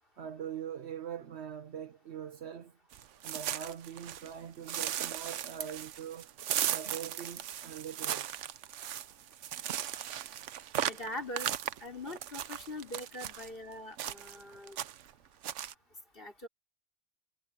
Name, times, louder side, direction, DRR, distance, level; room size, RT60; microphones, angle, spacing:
voice 1, 0.2-2.7 3.2-6.3 6.7-8.3, right 9 dB, 70° right, 1.1 m, -42 dB
sound 1, 2.9-4.3 4.7-13.5 14.0-14.4 14.7-15.1 15.4-15.7, right 10 dB, 90° right, 1.1 m, -37 dB
voice 2, 10.8-11.5 11.8-14.8 16.2-16.5, left 1 dB, 50° left, 4.9 m, -42 dB
omnidirectional pair, 1.2 m